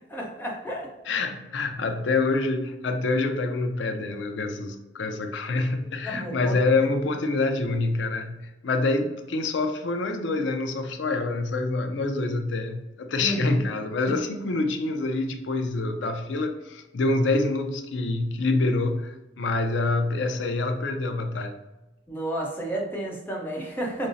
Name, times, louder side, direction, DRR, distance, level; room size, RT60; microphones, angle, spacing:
voice 1, 0.0-0.9 6.0-6.9 13.2-13.6 22.1-24.1, right 1 dB, 10° left, 0.7 m, -32 dB
voice 2, 1.1-21.6, left 3 dB, 90° left, 0.5 m, -26 dB
5.1 x 2.0 x 2.6 m
head